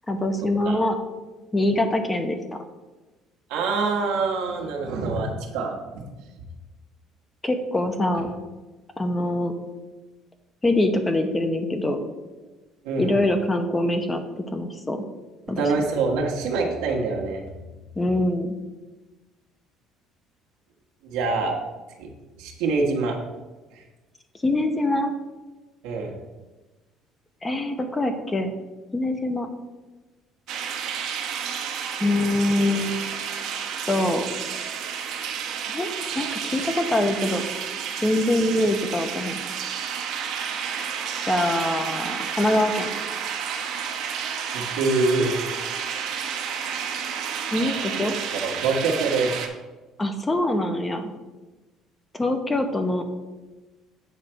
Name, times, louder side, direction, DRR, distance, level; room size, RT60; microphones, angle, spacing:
voice 1, 0.1-1.0 1.5-2.6 7.4-8.3 9.0-9.5 10.6-12.0 13.0-15.0 15.5-15.6 18.0-18.5 24.4-25.1 27.4-28.5 28.9-29.5 32.0-33.0 33.9-34.3 35.7-35.9 36.1-37.4 38.0-39.4 41.3-42.9 47.5-48.2 50.0-51.1 52.1-53.0, left 1 dB, 15° left, 6 dB, 0.8 m, -24 dB
voice 2, 3.5-5.7 12.8-13.2 15.6-17.4 21.0-21.5 22.0-22.1 22.4-23.2 25.8-26.1 44.5-45.3 48.4-49.3, right 3 dB, 90° right, -1 dB, 1.3 m, -25 dB
sound 1, 30.5-49.5, right 7 dB, 70° right, 0.9 m, -31 dB
8.0 x 3.3 x 6.0 m, 1.2 s
cardioid pair, 125°, 0 cm